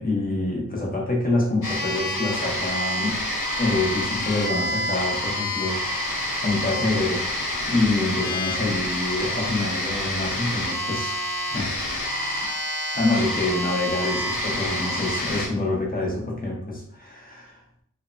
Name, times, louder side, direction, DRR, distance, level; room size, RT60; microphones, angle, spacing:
voice 1, 0.0-3.2 3.6-6.1 6.4-7.3 7.7-11.2 11.5-11.7 12.9-17.6, left 2 dB, 25° left, -2 dB, 0.7 m, -26 dB
sound 1, 1.6-15.5, left 1 dB, 65° left, 0.8 m, -28 dB
2.8 x 2.1 x 2.5 m, 0.65 s
wide cardioid pair, 120°, 33 cm